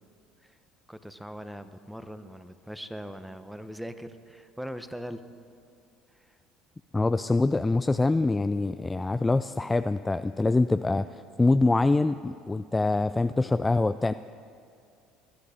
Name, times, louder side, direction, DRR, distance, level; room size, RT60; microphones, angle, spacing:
voice 1, 0.9-5.2 6.1-6.4, equal, 5° right, 10 dB, 1.0 m, -41 dB
voice 2, 6.9-14.1, left 2 dB, 15° left, 12 dB, 0.3 m, -24 dB
20.5 x 11.5 x 5.0 m, 2.4 s
hypercardioid pair, 75°, 0 cm